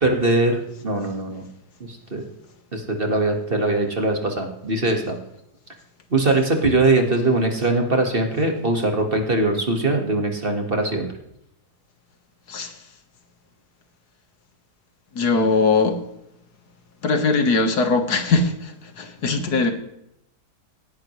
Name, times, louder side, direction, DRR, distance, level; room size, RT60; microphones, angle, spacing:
voice 1, 0.0-1.4 1.8-2.2 2.7-5.2 6.1-11.1, right 2 dB, 35° right, 3 dB, 1.9 m, -21 dB
voice 2, 15.2-16.0 17.0-19.7, left 3 dB, 70° left, 6 dB, 1.9 m, -20 dB
18.0 x 10.5 x 3.2 m, 0.80 s
omnidirectional pair, 1.8 m